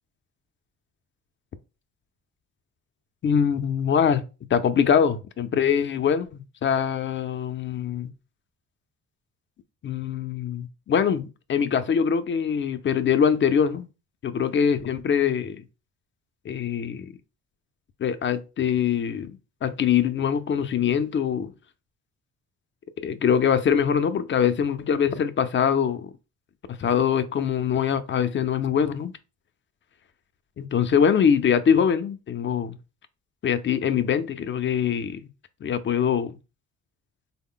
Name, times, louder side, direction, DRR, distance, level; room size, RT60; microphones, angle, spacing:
voice 1, 3.2-4.3 4.5-8.1 9.8-13.9 14.2-15.6 16.5-17.1 18.0-19.3 19.6-21.5 23.0-26.1 26.8-29.1 30.6-32.7 33.4-35.3 35.6-36.4, left 7 dB, 40° left, 0.5 m, -23 dB
3.7 x 2.0 x 3.7 m
cardioid pair, 90°, 30 cm